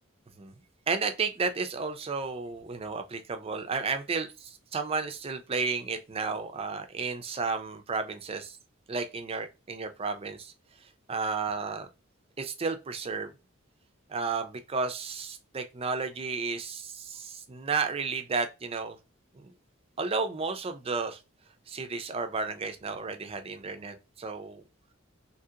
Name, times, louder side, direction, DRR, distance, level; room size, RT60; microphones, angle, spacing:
voice 1, 0.9-8.6 8.9-10.5 10.8-11.9 12.4-13.3 14.1-19.0 19.3-19.5 20.0-21.2 21.7-24.6, right 4 dB, 30° right, 0.4 m, -32 dB
2.9 x 2.8 x 2.4 m
head